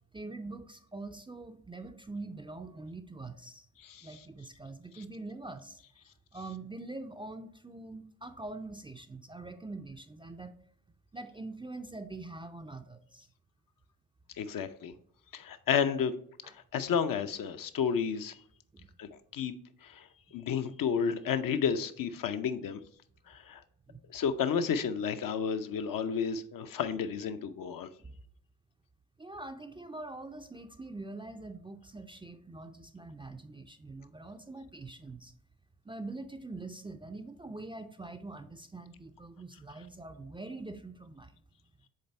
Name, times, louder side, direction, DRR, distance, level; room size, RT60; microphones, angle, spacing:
voice 1, 0.1-3.7 4.0-5.8 6.3-10.5 11.1-13.3 16.4-16.5 18.7-18.9 23.9-24.1 28.0-28.1 29.2-35.3 35.9-41.3, right 2 dB, 10° right, 7 dB, 0.5 m, -44 dB
voice 2, 14.4-14.9 15.3-16.2 16.7-18.4 19.0-19.5 19.8-20.1 20.3-22.8 23.3-23.6 24.1-27.9, left 7 dB, 50° left, 8 dB, 0.6 m, -31 dB
6.5 x 3.9 x 4.3 m, 0.64 s
hypercardioid pair, 40°, 43 cm